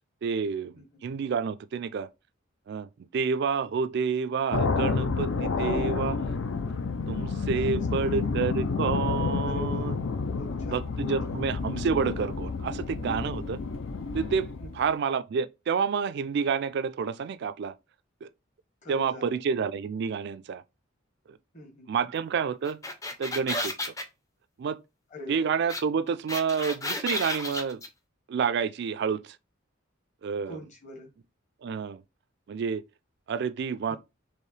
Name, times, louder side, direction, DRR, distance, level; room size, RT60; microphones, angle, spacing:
voice 1, 0.2-2.1 2.7-6.2 7.1-10.0 10.7-13.6 14.1-17.7 18.2-18.3 18.9-20.6 21.3-21.4 21.9-22.8 23.2-23.9 24.6-24.8 25.3-27.8 28.3-29.4 30.2-30.6 31.6-32.0 32.5-32.8 33.3-34.0, right 6 dB, 55° right, 0.3 m, -29 dB
sound 1, 4.5-14.9, left 4 dB, 75° left, 0.5 m, -30 dB
voice 2, 7.6-8.4 9.4-9.9 10.4-11.1 14.6-14.9 18.8-19.4 21.5-22.1 25.1-25.5 25.9-26.0 30.4-31.1 33.9-34.0, left 2 dB, 35° left, 1.3 m, -43 dB
sound 2, 22.6-24.0 25.7-25.8 26.1-27.9, left 2 dB, 15° left, 0.5 m, -32 dB
4.6 x 3.1 x 3.2 m
head